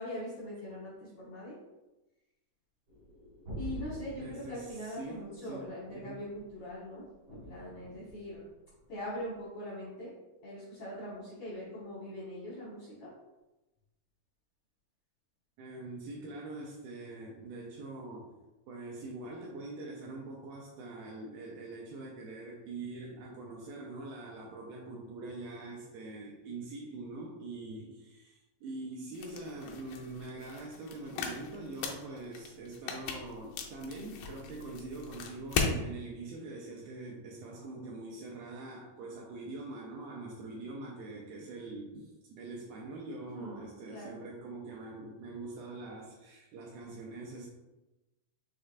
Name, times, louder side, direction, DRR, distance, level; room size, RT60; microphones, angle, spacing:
voice 1, 0.0-1.5 3.5-7.0 7.3-8.4 8.9-10.1 10.4-13.1 43.3-43.6 43.9-44.2, left 1 dB, 75° left, -8 dB, 1.6 m, -42 dB
sound 1, 2.9-9.4, right 1 dB, 60° right, 1.4 m, -47 dB
voice 2, 4.2-6.2 15.6-18.4 18.7-47.5, right 2 dB, 85° right, -2 dB, 2.1 m, -44 dB
sound 2, 29.1-35.8, left 5 dB, 90° left, 2.0 m, -38 dB
6.4 x 3.3 x 2.4 m, 1.0 s
omnidirectional pair, 4.6 m